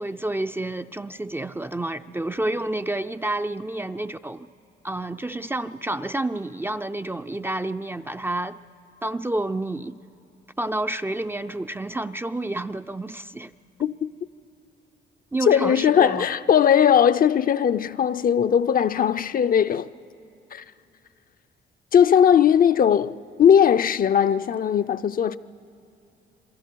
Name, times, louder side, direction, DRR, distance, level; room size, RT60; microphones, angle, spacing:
voice 1, 0.0-4.5 4.8-8.6 9.0-10.0 10.6-13.5 15.3-16.3, right 2 dB, 10° right, 0.4 m, -29 dB
voice 2, 13.8-14.1 15.5-19.9 20.5-20.6 21.9-25.4, left 8 dB, 45° left, 0.5 m, -19 dB
28.0 x 22.5 x 4.6 m
cardioid pair, 90°, 20 cm